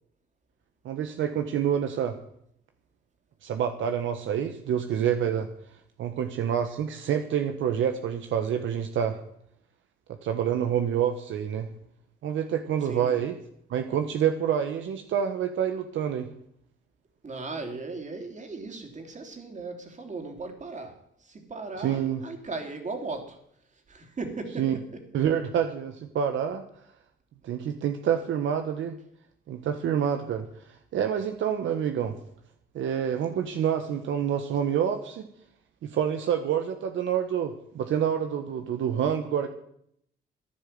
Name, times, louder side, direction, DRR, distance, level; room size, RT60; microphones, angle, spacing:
voice 1, 0.8-2.2 3.4-5.5 6.0-9.2 10.2-11.7 12.2-13.4 13.7-16.3 21.8-22.2 24.6-24.7 25.1-26.6 27.4-29.0 29.5-30.5 30.9-32.1 32.7-35.3 35.8-39.5, right 8 dB, 75° right, 1.3 m, -27 dB
voice 2, 12.8-13.2 17.2-23.4 23.9-24.8, right 3 dB, 40° right, 3.7 m, -37 dB
14.5 x 10.5 x 7.8 m
cardioid pair, 90°, 20 cm